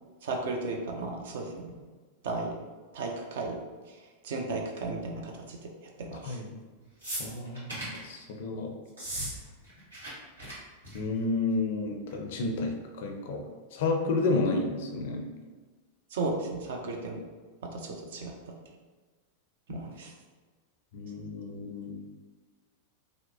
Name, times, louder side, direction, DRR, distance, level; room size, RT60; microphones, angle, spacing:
voice 1, 0.2-1.8 2.2-2.5 2.9-3.6 3.9-4.0 4.2-5.6 6.0-6.4 16.1-17.2 17.7-18.3 19.7-20.1, right 3 dB, 60° right, 1 dB, 0.4 m, -34 dB
sound 1, 7.0-8.0 8.9-9.3 9.6-10.1 10.4-10.5 10.8-11.1 12.1-12.2, right 1 dB, 80° right, 1.1 m, -37 dB
voice 2, 7.2-8.7 10.9-12.7 13.0-13.4 13.7-15.2 20.9-22.0, left 3 dB, 55° left, 3 dB, 0.4 m, -31 dB
2.7 x 2.0 x 2.6 m, 1.4 s
figure-of-eight pair, 90°, 0 cm